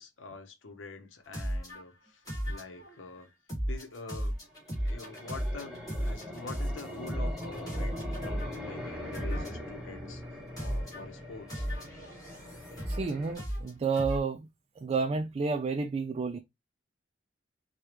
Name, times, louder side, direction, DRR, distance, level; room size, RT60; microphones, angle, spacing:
voice 1, 0.0-3.3 3.6-4.4 4.7-10.2 10.5-11.7, left 3 dB, 85° left, 0.8 m, -46 dB
sound 1, 1.3-1.8 2.3-3.0 3.5-8.5 9.1-9.7 10.6-11.0 11.5-13.1 13.3-14.2, equal, 20° left, 2.1 m, -34 dB
sound 2, 4.5-13.3, left 1 dB, 5° right, 1.0 m, -42 dB
voice 2, 12.9-14.5 14.8-16.4, right 4 dB, 30° right, 0.3 m, -31 dB
4.9 x 2.3 x 2.9 m
head